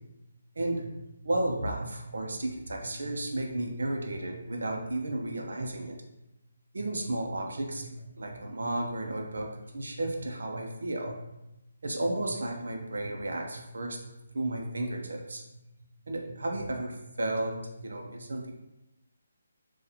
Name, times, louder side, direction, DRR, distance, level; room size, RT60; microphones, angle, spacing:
voice 1, 0.6-0.9 1.2-6.0 6.7-11.2 11.8-14.0 14.3-15.4 16.1-18.5, right 1 dB, 90° right, 2 dB, 0.6 m, -33 dB
4.1 x 2.4 x 2.8 m, 0.93 s
hypercardioid pair, 180°, 0 cm